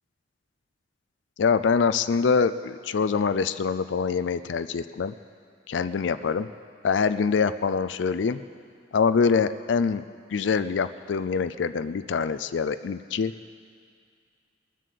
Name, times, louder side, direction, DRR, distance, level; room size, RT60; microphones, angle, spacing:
voice 1, 1.4-5.1 5.7-6.5 6.8-8.4 8.9-10.0 10.3-13.3, left 5 dB, 75° left, 12 dB, 0.4 m, -24 dB
21.5 x 7.5 x 6.8 m, 2.2 s
head